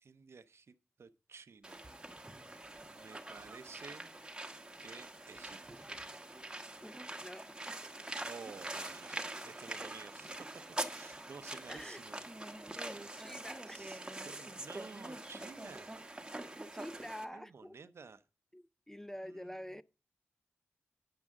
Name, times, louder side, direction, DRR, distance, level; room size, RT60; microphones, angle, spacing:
voice 1, 0.0-1.8 2.9-4.1 4.8-5.9 8.2-10.5 10.9-12.2 13.7-14.0 14.2-16.0 17.3-18.2 19.2-19.7, right 5 dB, 65° right, 0.7 m, -53 dB
sound 1, 1.6-17.2, right 1 dB, 20° right, 1.2 m, -44 dB
voice 2, 6.8-7.8 11.7-12.0 12.7-14.0 16.7-17.8 18.5-19.8, equal, 10° left, 0.4 m, -47 dB
9.6 x 7.4 x 3.6 m
cardioid pair, 50°, 5 cm